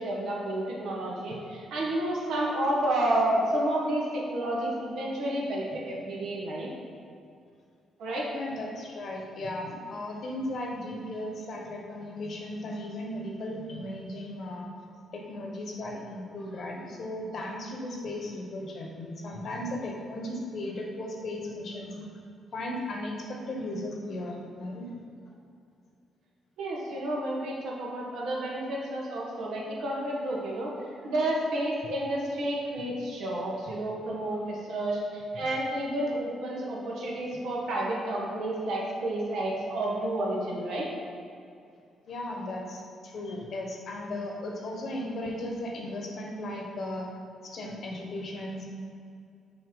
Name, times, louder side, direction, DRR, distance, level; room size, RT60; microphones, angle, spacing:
voice 1, 0.0-6.7 8.0-8.3 26.6-30.7 31.0-40.9, right 1 dB, 75° right, -3 dB, 1.3 m, -30 dB
voice 2, 8.3-14.6 15.1-22.0 22.5-24.9 42.1-47.1 47.4-48.7, left 1 dB, 55° left, 0 dB, 1.0 m, -36 dB
6.1 x 3.0 x 5.3 m, 2.5 s
cardioid pair, 90°, 0 cm